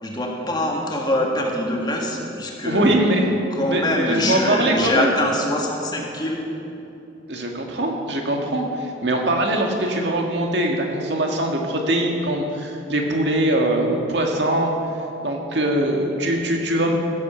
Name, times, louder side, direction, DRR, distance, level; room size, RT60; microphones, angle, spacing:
voice 1, 0.0-3.0 3.5-6.5, left 1 dB, 25° left, 0 dB, 1.6 m, -24 dB
voice 2, 2.6-3.3 3.6-5.1 7.3-14.7 15.2-16.9, right 1 dB, 70° right, 1 dB, 1.9 m, -22 dB
16.0 x 8.4 x 6.9 m, 2.8 s
head